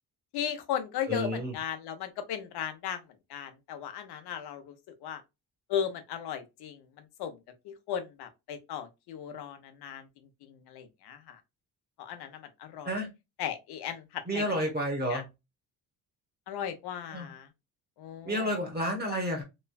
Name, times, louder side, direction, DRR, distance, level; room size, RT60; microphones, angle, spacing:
voice 1, 0.3-3.0 3.3-4.7 5.0-5.2 5.7-6.8 7.2-7.3 7.6-10.1 10.4-11.4 12.0-13.0 13.4-14.7 15.1-15.2 16.5-17.5 18.0-18.5, left 8 dB, 70° left, 0.8 m, -36 dB
voice 2, 1.1-1.5 12.8-13.1 14.3-15.3 17.1-17.3 18.2-19.4, equal, 25° right, 1.1 m, -30 dB
3.1 x 2.2 x 2.2 m
cardioid pair, 125°, 40 cm